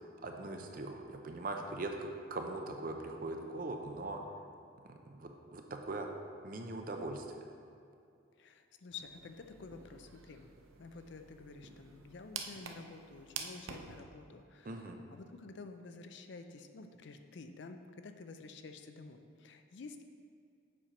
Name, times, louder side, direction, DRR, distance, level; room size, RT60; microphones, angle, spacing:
voice 1, 0.2-4.2 4.8-6.1 6.4-7.3 14.6-15.0, right 2 dB, 45° right, 4 dB, 0.6 m, -41 dB
voice 2, 8.4-20.0, left 4 dB, 60° left, 8 dB, 0.4 m, -50 dB
sound 1, 8.9-14.0, right 6 dB, 90° right, 0.6 m, -48 dB
7.4 x 4.4 x 5.0 m, 2.4 s
head